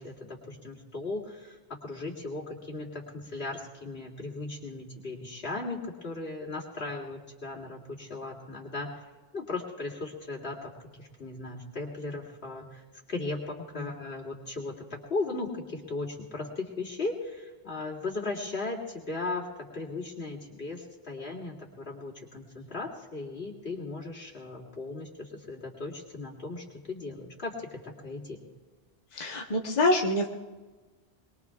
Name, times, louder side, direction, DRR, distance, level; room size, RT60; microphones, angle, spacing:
voice 1, 0.0-8.9 9.3-10.7 11.0-12.8 13.1-28.4, left 3 dB, 80° left, -2 dB, 2.9 m, -37 dB
voice 2, 29.1-30.3, left 2 dB, 45° left, 0 dB, 1.3 m, -26 dB
22.5 x 22.0 x 2.4 m, 1.3 s
omnidirectional pair, 1.1 m